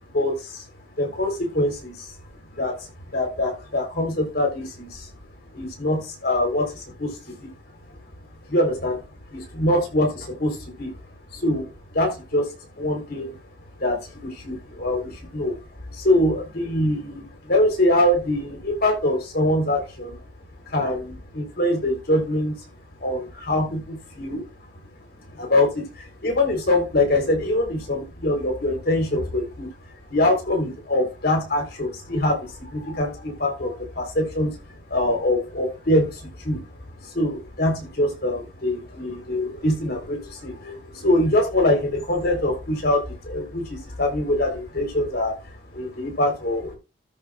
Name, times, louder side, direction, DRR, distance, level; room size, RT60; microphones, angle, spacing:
voice 1, 0.1-0.6 1.0-2.1 2.5-5.1 5.5-7.5 7.9-8.0 8.5-9.0 9.3-10.9 11.3-13.4 13.8-15.6 15.9-20.2 20.7-22.6 23.0-24.5 25.3-29.7 30.1-36.7 37.0-45.4 45.7-46.7, left 1 dB, 60° left, 2 dB, 4.2 m, -24 dB
14.0 x 6.4 x 2.6 m, 0.27 s
head